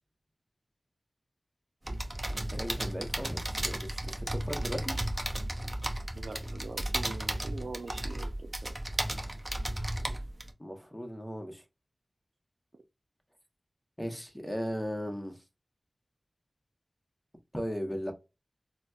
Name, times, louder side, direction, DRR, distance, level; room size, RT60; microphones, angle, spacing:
sound 1, 1.8-10.5, right 1 dB, 25° right, 0.6 m, -34 dB
voice 1, 2.5-4.9 10.6-11.6 14.0-15.4 17.5-18.1, equal, 5° left, 0.9 m, -37 dB
voice 2, 6.2-8.7, right 3 dB, 90° right, 0.4 m, -43 dB
4.0 x 2.1 x 2.3 m
wide cardioid pair, 60°, 0 cm